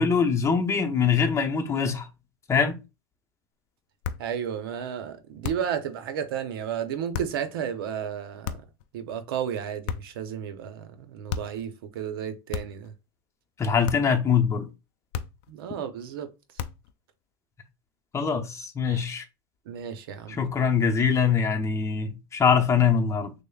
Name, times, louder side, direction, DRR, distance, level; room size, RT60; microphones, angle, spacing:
voice 1, 0.0-2.0 2.5-2.8 13.6-14.7 18.1-19.2 20.4-23.3, left 6 dB, 25° left, 0.7 m, -23 dB
sound 1, 4.0-4.3 5.4-5.8 7.1-7.4 8.4-8.8 9.9-10.3 11.3-11.6 12.5-12.9 13.9-14.2 15.1-15.5 16.6-16.9, left 8 dB, 65° left, 0.4 m, -34 dB
voice 2, 4.2-8.6 8.9-12.9 15.5-16.3 18.9-19.0 19.7-20.4, right 8 dB, 80° right, 0.7 m, -33 dB
6.2 x 2.1 x 2.3 m
supercardioid pair, 105°, 12 cm